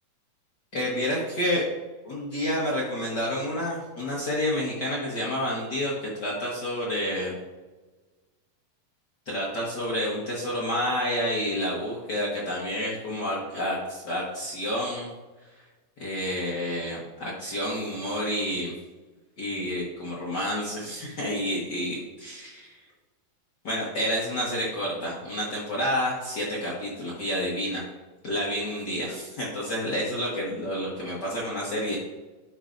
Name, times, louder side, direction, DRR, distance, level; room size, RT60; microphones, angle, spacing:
voice 1, 0.7-1.6 2.0-7.3 9.3-15.1 16.0-18.7 19.4-22.8 23.6-27.8 28.2-32.0, equal, 70° left, -5 dB, 0.9 m, -29 dB
12.5 x 5.6 x 2.6 m, 1.2 s
omnidirectional pair, 4.1 m